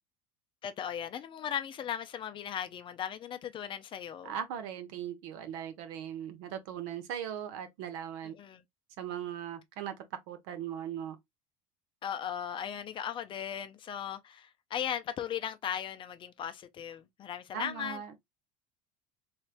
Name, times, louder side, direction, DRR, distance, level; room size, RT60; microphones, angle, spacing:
voice 1, 0.6-4.3 8.3-8.6 12.0-18.2, left 9 dB, 30° left, 0.5 m, -37 dB
voice 2, 4.2-8.4 9.0-11.2 17.5-18.2, right 9 dB, 70° right, 1.1 m, -39 dB
3.2 x 3.2 x 2.5 m
supercardioid pair, 130°, 17 cm